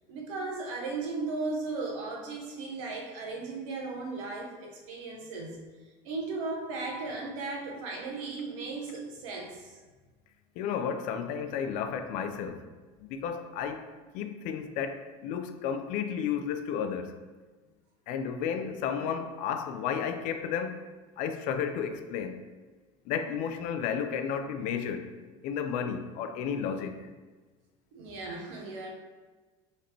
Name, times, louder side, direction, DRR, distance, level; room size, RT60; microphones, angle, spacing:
voice 1, 0.1-5.6 6.0-9.7 27.9-28.9, right 3 dB, 85° right, 0.9 m, -36 dB
voice 2, 10.6-12.6 13.0-13.9 14.1-17.1 18.1-20.8 21.2-22.4 23.1-25.1 25.4-27.1, left 7 dB, 55° left, 0.4 m, -32 dB
4.1 x 3.1 x 2.9 m
cardioid pair, 140°, 16 cm